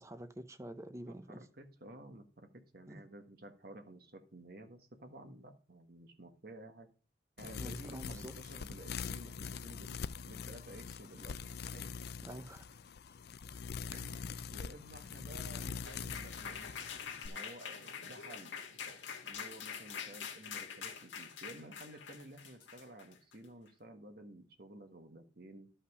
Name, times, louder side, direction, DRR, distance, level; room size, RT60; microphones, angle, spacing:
voice 1, 0.0-1.4 2.9-3.0 7.4-8.3 12.2-12.7, right 1 dB, 15° right, 0.6 m, -47 dB
voice 2, 1.1-6.9 7.4-10.0 10.3-12.1 13.9-16.8 17.2-25.7, right 1 dB, 55° right, 1.4 m, -53 dB
sound 1, 7.4-17.3, left 5 dB, 55° left, 0.4 m, -44 dB
sound 2, 15.2-23.5, left 7 dB, 80° left, 1.8 m, -45 dB
11.5 x 5.7 x 4.9 m
head